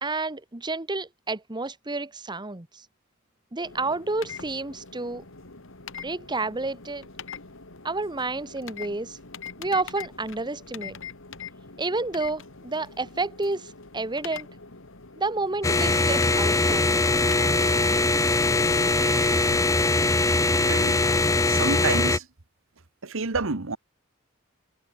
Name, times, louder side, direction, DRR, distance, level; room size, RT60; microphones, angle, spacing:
voice 1, 0.0-2.8 3.5-5.2 6.0-7.1 7.8-9.2 9.6-11.0 11.8-14.5 15.2-16.9, right 3 dB, 20° right, 1.4 m, -30 dB
sound 1, 3.6-20.1, left 6 dB, 65° left, 3.3 m, -43 dB
sound 2, 15.6-22.2, left 2 dB, 15° left, 0.8 m, -22 dB
voice 2, 20.7-21.0 21.5-22.3 23.0-23.8, right 4 dB, 65° right, 1.4 m, -28 dB
head